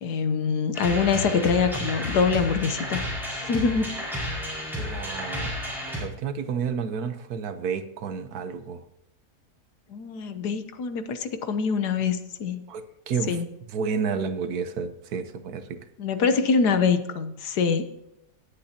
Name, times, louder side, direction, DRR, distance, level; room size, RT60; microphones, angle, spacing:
voice 1, 0.0-3.9 9.9-12.6 13.3-13.5 16.0-17.9, left 5 dB, 85° left, 10 dB, 1.5 m, -25 dB
sound 1, 0.7-6.0, left 1 dB, ahead, 4.9 m, -32 dB
voice 2, 4.8-5.5 6.0-8.8 12.7-13.4 13.7-15.8, right 6 dB, 70° right, 10 dB, 1.4 m, -30 dB
18.5 x 8.3 x 2.9 m, 0.86 s
omnidirectional pair, 1.7 m